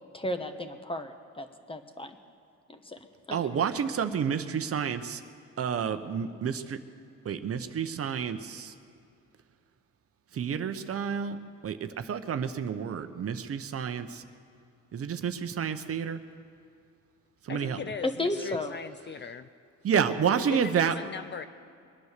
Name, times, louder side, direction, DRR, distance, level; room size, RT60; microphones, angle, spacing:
voice 1, 0.1-2.2 2.7-3.0 3.3-3.4 17.5-17.7 18.0-18.7, left 1 dB, 15° left, 7 dB, 1.2 m, -34 dB
voice 2, 3.3-5.2 5.6-6.8 7.2-8.7 10.3-11.4 11.6-14.2 14.9-16.2 17.4-17.8 19.8-20.9, right 7 dB, 50° right, 9 dB, 0.9 m, -29 dB
voice 3, 17.5-19.5 20.4-21.5, left 6 dB, 35° left, 11 dB, 0.5 m, -39 dB
22.0 x 9.6 x 6.7 m, 2.4 s
cardioid pair, 90°, 30 cm